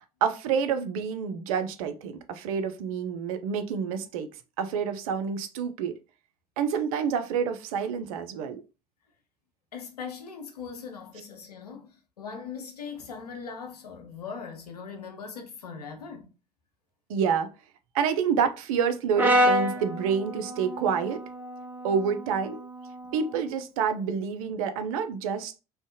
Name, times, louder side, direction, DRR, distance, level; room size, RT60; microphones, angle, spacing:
voice 1, 0.2-4.3 4.6-6.0 6.6-8.6 17.1-17.5 17.9-21.2 21.8-22.6 23.1-25.5, right 6 dB, 65° right, 0.4 m, -28 dB
voice 2, 9.7-16.3, left 6 dB, 85° left, 0.5 m, -40 dB
Brass instrument, 19.2-23.4, equal, 10° right, 0.6 m, -28 dB
2.5 x 2.1 x 2.6 m
figure-of-eight pair, 65°, 20 cm